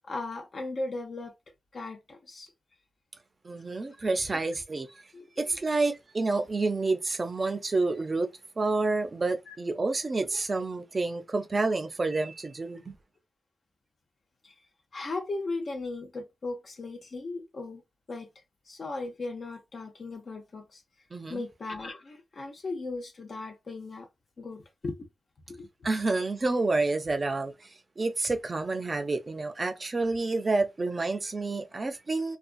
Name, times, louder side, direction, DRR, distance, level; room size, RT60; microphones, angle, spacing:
voice 1, 0.1-1.3 1.7-2.5 5.1-5.6 9.5-9.6 14.4-14.5 14.9-17.8 18.1-18.3 18.7-20.8 21.3-24.1 24.4-25.1 25.5-25.7, left 3 dB, 55° left, 0.7 m, -37 dB
voice 2, 3.4-4.9 5.4-8.3 8.6-13.0 21.1-21.4 25.8-32.4, right 3 dB, 40° right, 0.5 m, -29 dB
2.4 x 2.3 x 2.5 m
cardioid pair, 65°, 0 cm